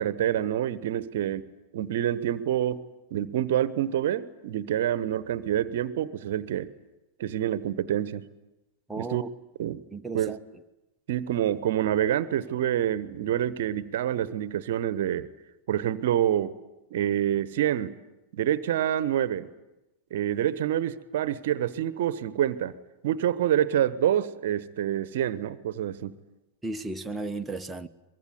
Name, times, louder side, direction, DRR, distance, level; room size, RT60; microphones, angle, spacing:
voice 1, 0.0-1.4 1.7-2.8 3.1-6.7 7.2-8.3 9.0-9.2 9.6-9.8 10.1-10.4 11.1-15.3 15.7-16.5 16.9-17.9 18.3-19.5 20.1-22.7 23.0-26.1, right 11 dB, 55° right, 1.1 m, -27 dB
voice 2, 8.9-9.3 9.9-10.4 26.6-27.9, right 2 dB, 10° right, 1.2 m, -34 dB
23.5 x 22.5 x 9.6 m
figure-of-eight pair, 90°, 0 cm